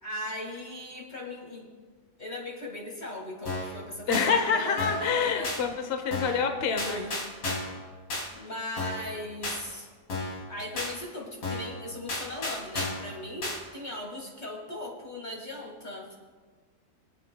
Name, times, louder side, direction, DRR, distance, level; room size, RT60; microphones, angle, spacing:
voice 1, 0.0-1.7 2.2-5.5 6.8-7.1 8.3-9.9 10.2-16.1, left 1 dB, 25° left, -1 dB, 1.9 m, -38 dB
sound 1, 3.5-3.8 4.1-4.3 4.8-5.1 5.4-5.6 6.1-6.4 6.8-7.8 8.1-8.3 8.8-9.1 9.4-9.6 10.1-10.4 10.8-10.9 11.4-11.7 12.1-13.1 13.4-13.6, left 2 dB, 75° left, 3.6 m, -33 dB
voice 2, 4.1-7.0, left 5 dB, 50° left, 6 dB, 0.7 m, -27 dB
24.5 x 9.2 x 2.3 m, 1.4 s
omnidirectional pair, 2.1 m